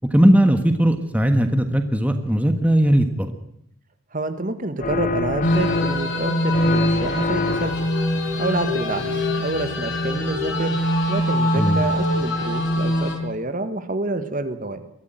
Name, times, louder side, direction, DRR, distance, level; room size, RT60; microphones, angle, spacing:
voice 1, 0.1-3.3 11.5-11.8, right 1 dB, 5° right, 6 dB, 1.5 m, -18 dB
voice 2, 4.1-7.9 8.4-10.8 11.1-14.8, right 2 dB, 40° right, 10 dB, 1.7 m, -28 dB
sound 1, 4.8-6.2 6.5-8.0, left 3 dB, 40° left, 1.2 m, -26 dB
sound 2, 5.4-13.2, equal, 65° left, 5.7 m, -23 dB
22.5 x 14.5 x 9.2 m, 0.74 s
head